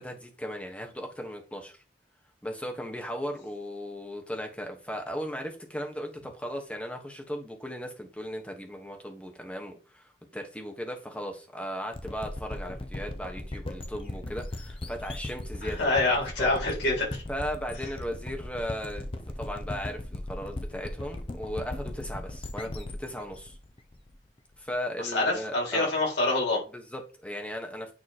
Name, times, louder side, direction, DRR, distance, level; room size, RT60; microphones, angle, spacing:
voice 1, 0.0-1.8 2.4-15.9 16.4-16.5 17.3-19.1 19.4-23.6 24.6-25.9 26.7-27.9, equal, 5° left, 3 dB, 1.1 m, -37 dB
sound 1, 11.9-24.6, left 1 dB, 30° left, 0.7 m, -38 dB
voice 2, 15.6-17.2 25.0-26.6, left 2 dB, 85° left, -2 dB, 3.5 m, -26 dB
8.9 x 3.1 x 4.2 m, 0.35 s
head